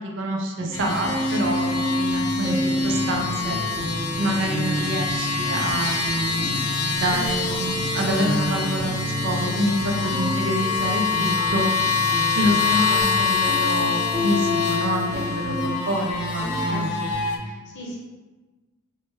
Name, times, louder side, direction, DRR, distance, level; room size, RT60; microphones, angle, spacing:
voice 1, 0.0-3.6 4.2-11.7 12.3-16.9, equal, 55° right, 1 dB, 0.5 m, -27 dB
sound 1, 0.6-17.2, equal, 10° right, 0.8 m, -29 dB
sound 2, 0.7-17.4, left 5 dB, 85° left, 0.4 m, -26 dB
Fowl, 6.1-8.1 8.5-9.2 9.7-10.7 11.1-13.9, equal, 5° left, 0.4 m, -44 dB
voice 2, 16.6-18.0, equal, 55° left, -3 dB, 0.7 m, -38 dB
3.1 x 2.1 x 3.4 m, 1.3 s
head